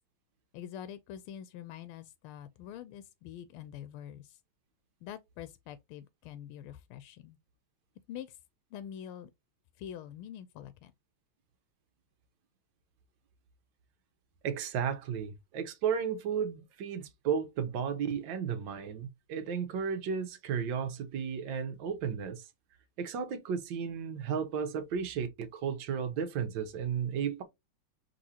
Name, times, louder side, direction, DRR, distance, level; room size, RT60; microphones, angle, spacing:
voice 1, 0.5-4.4 5.0-7.4 8.1-8.4 8.7-9.3 9.8-10.9, left 10 dB, 90° left, 1.5 m, -45 dB
voice 2, 14.4-22.4 23.0-27.4, right 7 dB, 65° right, 1.5 m, -34 dB
5.3 x 3.5 x 2.8 m
omnidirectional pair, 2.3 m